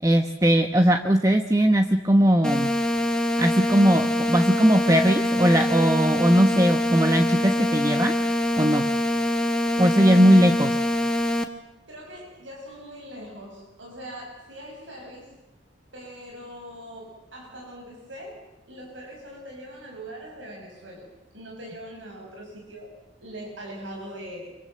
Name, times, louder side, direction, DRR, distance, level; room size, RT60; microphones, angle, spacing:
voice 1, 0.0-2.7 3.4-8.1 8.6-8.9 9.8-10.8, equal, 15° right, 6 dB, 1.0 m, -19 dB
sound 1, 2.4-11.4, left 1 dB, 5° left, 1.6 m, -24 dB
voice 2, 11.9-15.3 15.9-21.1 21.3-22.9 23.2-24.5, equal, 90° right, 0 dB, 6.4 m, -41 dB
26.5 x 24.5 x 7.7 m, 0.93 s
head